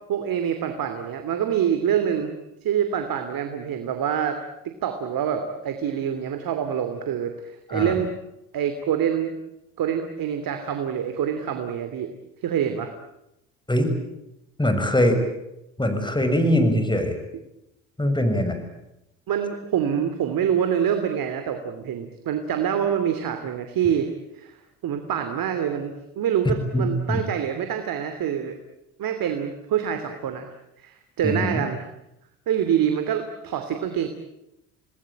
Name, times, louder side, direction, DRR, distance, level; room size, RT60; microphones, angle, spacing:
voice 1, 0.1-2.3 2.6-4.4 4.8-8.2 8.5-9.3 9.8-12.1 12.4-12.9 19.3-24.5 24.8-28.5 29.0-30.5 30.8-31.8 32.5-34.1, right 8 dB, 60° right, 7 dB, 2.9 m, -26 dB
voice 2, 14.6-15.2 15.8-17.2 18.0-18.6 26.7-27.2 31.2-31.6, equal, 10° left, 7 dB, 7.1 m, -22 dB
28.5 x 19.5 x 9.0 m, 0.88 s
hypercardioid pair, 60°, 39 cm